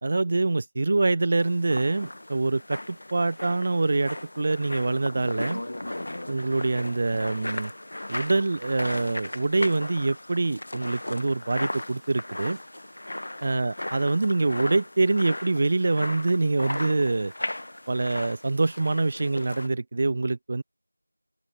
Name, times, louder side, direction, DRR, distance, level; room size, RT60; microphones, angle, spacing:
voice 1, 0.0-5.6 6.3-7.7 8.1-12.6 13.4-17.3 17.9-20.6, right 3 dB, 15° right, 0.3 m, -25 dB
sound 1, 1.4-19.7, left 1 dB, 35° left, 1.3 m, -37 dB
open air
figure-of-eight pair, 175°, 0 cm